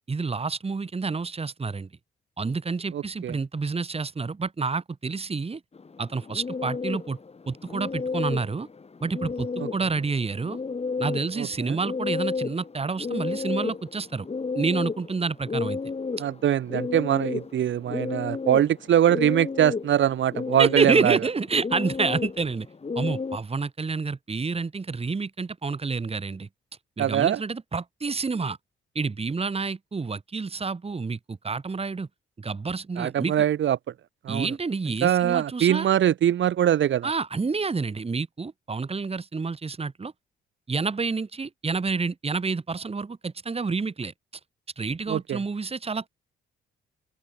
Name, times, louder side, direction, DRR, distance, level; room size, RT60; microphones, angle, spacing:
voice 1, 0.1-1.9 2.4-5.6 6.0-7.2 7.5-8.7 9.0-10.6 11.0-14.3 14.5-15.8 20.6-22.7 22.9-26.5 27.0-28.6 28.9-32.1 32.4-33.5 34.3-35.9 37.0-40.1 40.7-44.1 44.8-46.1, right 4 dB, 30° right, 2.5 m, -28 dB
voice 2, 2.9-3.3 11.4-11.8 16.2-21.2 27.0-27.4 33.0-33.8 34.2-34.5 35.0-37.1 45.1-45.4, right 10 dB, 65° right, 2.7 m, -23 dB
sound 1, 5.7-23.4, left 4 dB, 30° left, 2.1 m, -32 dB
open air
supercardioid pair, 65°, 20 cm